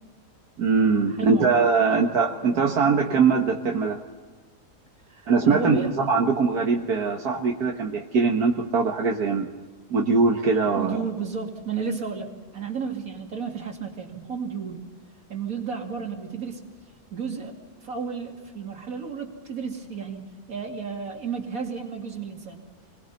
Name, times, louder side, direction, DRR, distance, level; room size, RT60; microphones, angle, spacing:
voice 1, 0.6-4.0 5.3-9.5 9.9-11.0, right 4 dB, 80° right, 1 dB, 1.9 m, -22 dB
voice 2, 1.2-1.5 1.9-2.1 5.1-5.9 10.7-14.9 15.3-16.6 17.1-17.6 17.8-22.6, right 6 dB, 65° right, 2 dB, 3.0 m, -32 dB
30.0 x 22.0 x 4.2 m, 1.3 s
omnidirectional pair, 1.6 m